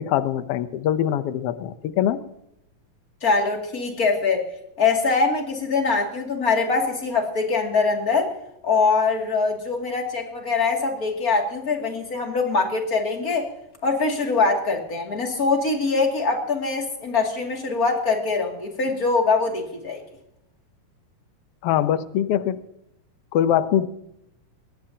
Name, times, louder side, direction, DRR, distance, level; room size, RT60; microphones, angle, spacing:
voice 1, 0.0-2.2 21.6-22.6 23.3-23.9, left 10 dB, 80° left, 12 dB, 1.3 m, -23 dB
voice 2, 3.2-4.4 4.8-8.3 8.6-13.5 13.8-20.0, left 4 dB, 30° left, 1 dB, 2.7 m, -23 dB
22.0 x 19.0 x 2.9 m, 0.79 s
omnidirectional pair, 3.8 m